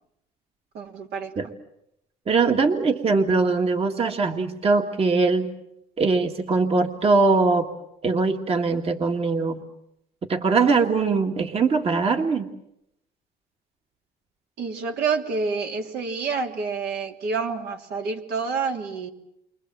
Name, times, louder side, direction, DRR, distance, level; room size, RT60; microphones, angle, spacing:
voice 1, 0.7-1.3 14.6-19.1, right 5 dB, 70° right, 2 dB, 3.2 m, -28 dB
voice 2, 2.3-5.5 6.0-7.7 8.0-9.6 10.3-12.5, right 4 dB, 35° right, 4 dB, 2.0 m, -21 dB
29.5 x 24.5 x 7.6 m, 0.80 s
cardioid pair, 110°, 17 cm